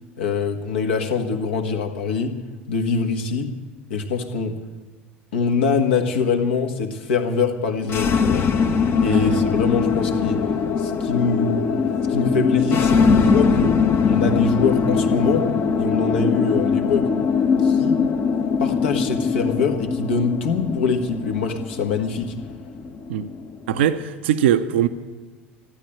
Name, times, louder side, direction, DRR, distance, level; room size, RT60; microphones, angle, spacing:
voice 1, 0.2-2.4 2.7-3.5 3.9-4.6 5.3-8.5 9.0-10.5 10.8-11.7 12.1-13.8 14.1-15.5 15.8-17.1 17.6-18.0 18.6-22.3, left 5 dB, 70° left, 1.6 m, -23 dB
sound 1, 7.8-23.9, left 5 dB, 35° left, 1.0 m, -21 dB
voice 2, 9.0-9.4 23.1-23.3 23.7-24.9, right 10 dB, 65° right, 0.7 m, -21 dB
15.0 x 10.5 x 8.6 m
figure-of-eight pair, 70°, 6 cm